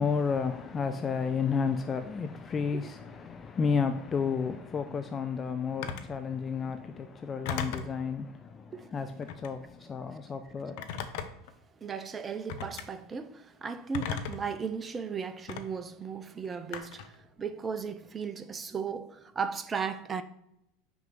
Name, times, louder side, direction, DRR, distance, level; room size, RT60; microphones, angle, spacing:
voice 1, 0.0-10.9, left 5 dB, 25° left, 0.5 m, -32 dB
Telephone, 5.8-6.1 7.4-8.0 9.2-9.6 10.8-11.5 12.5-12.9 13.9-14.5 15.5-15.6 16.7-17.1, left 6 dB, 60° left, 0.8 m, -36 dB
voice 2, 11.8-20.2, right 6 dB, 25° right, 0.6 m, -36 dB
6.2 x 5.1 x 5.9 m
figure-of-eight pair, 80°, 0 cm